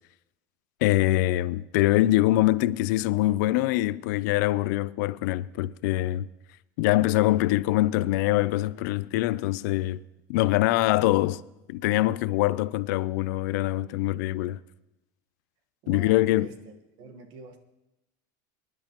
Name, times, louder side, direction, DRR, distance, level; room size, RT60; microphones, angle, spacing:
voice 1, 0.8-6.3 6.8-10.0 10.3-11.4 11.7-14.6 15.9-16.5, left 16 dB, 70° left, 0.4 m, -24 dB
voice 2, 15.8-17.6, right 4 dB, 45° right, 1.4 m, -46 dB
24.0 x 11.0 x 3.0 m
supercardioid pair, 160°, 10 cm